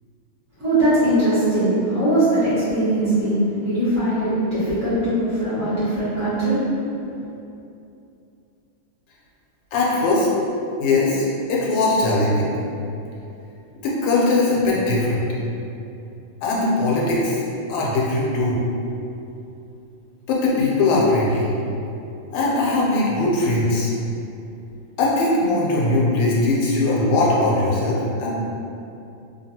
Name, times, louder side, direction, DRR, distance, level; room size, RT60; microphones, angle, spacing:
voice 1, 0.6-6.6, right 1 dB, 50° right, -14 dB, 0.9 m, -20 dB
voice 2, 9.7-10.3 10.8-12.6 13.8-15.2 16.4-17.4 17.7-18.6 20.3-21.5 22.3-23.9 25.0-28.3, left 2 dB, 85° left, -4 dB, 1.6 m, -20 dB
3.3 x 2.5 x 2.7 m, 2.7 s
omnidirectional pair, 2.3 m